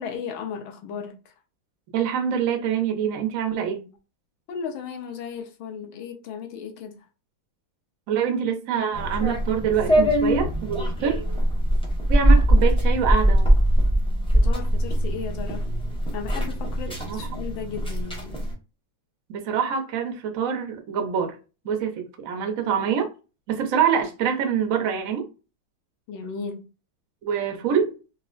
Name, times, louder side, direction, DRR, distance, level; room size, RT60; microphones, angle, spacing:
voice 1, 0.0-1.3 4.5-7.1 14.3-15.7 16.1-18.4 26.1-26.7, left 6 dB, 80° left, 1.5 m, -35 dB
voice 2, 1.9-3.8 8.1-11.3 12.1-13.5 17.0-17.2 19.3-21.4 21.6-23.1 23.5-25.2 27.2-28.0, right 7 dB, 65° right, 0.8 m, -25 dB
sound 1, 8.9-18.5, equal, 5° left, 0.5 m, -22 dB
4.0 x 2.4 x 2.4 m
omnidirectional pair, 2.2 m